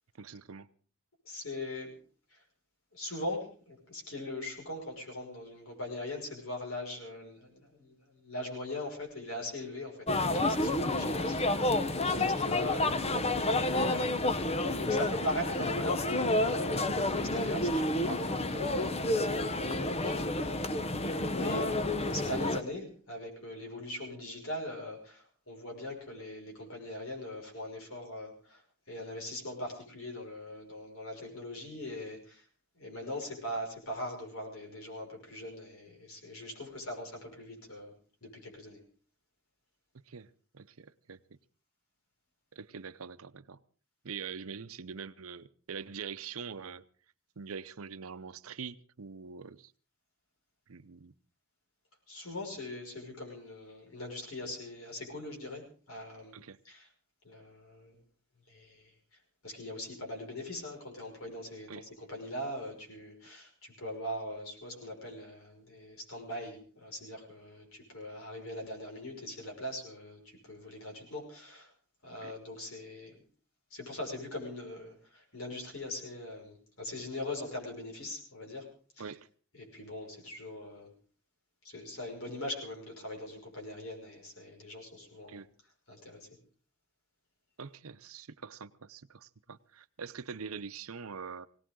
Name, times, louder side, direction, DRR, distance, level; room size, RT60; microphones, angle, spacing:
voice 1, 0.2-0.7 11.4-11.5 15.0-15.1 21.0-21.1 40.1-41.2 42.6-43.6 44.0-46.9 47.4-49.7 50.7-51.1 56.3-56.6 61.7-61.9 72.2-72.3 79.0-79.3 85.3-85.5 87.6-91.5, right 6 dB, 80° right, 0.7 m, -44 dB
voice 2, 1.2-1.9 2.3-2.4 2.9-16.1 16.4-20.2 21.3-28.6 28.9-32.4 32.8-37.9 38.2-38.8 52.1-56.3 56.6-56.9 57.2-58.0 58.5-58.9 59.4-71.7 72.0-73.2 73.7-78.7 79.0-79.1 79.5-80.9 81.6-85.4 85.9-86.3, left 1 dB, 75° left, 5.8 m, -41 dB
sound 1, 10.1-22.6, left 2 dB, 30° left, 0.9 m, -30 dB
20.5 x 18.0 x 3.8 m
head